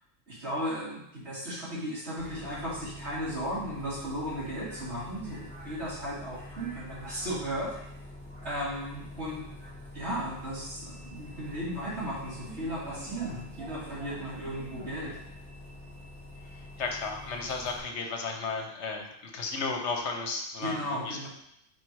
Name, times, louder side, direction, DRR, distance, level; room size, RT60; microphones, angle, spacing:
voice 1, 0.3-7.7 8.4-9.4 9.9-15.2 20.6-21.3, equal, 65° right, -9 dB, 3.1 m, -35 dB
Bus, 2.2-17.8, left 1 dB, 10° left, 2.6 m, -45 dB
voice 2, 16.8-21.3, left 4 dB, 70° left, 3 dB, 1.1 m, -34 dB
5.1 x 4.6 x 4.6 m, 0.78 s
omnidirectional pair, 1.2 m